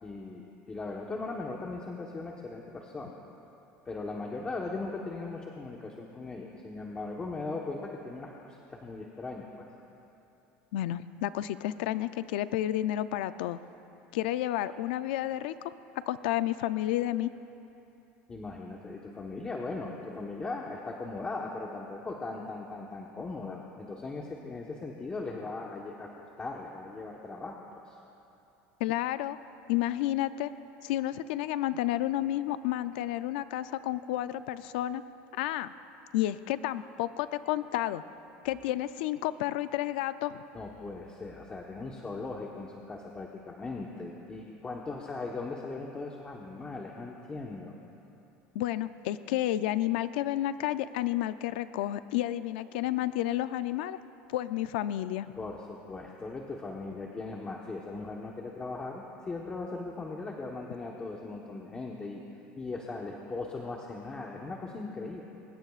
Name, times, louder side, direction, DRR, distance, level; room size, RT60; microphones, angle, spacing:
voice 1, 0.0-3.1 3.8-9.7 18.3-28.0 40.5-47.7 55.4-62.2 62.6-65.2, left 3 dB, 20° left, -1 dB, 1.2 m, -39 dB
voice 2, 10.7-13.6 14.1-15.5 16.1-17.3 28.8-29.4 29.7-30.5 30.8-35.0 35.3-35.7 36.1-38.0 38.4-40.4 48.5-54.0 54.3-55.3, left 14 dB, 85° left, 13 dB, 0.5 m, -31 dB
24.0 x 20.5 x 2.5 m, 2.9 s
supercardioid pair, 125°, 5 cm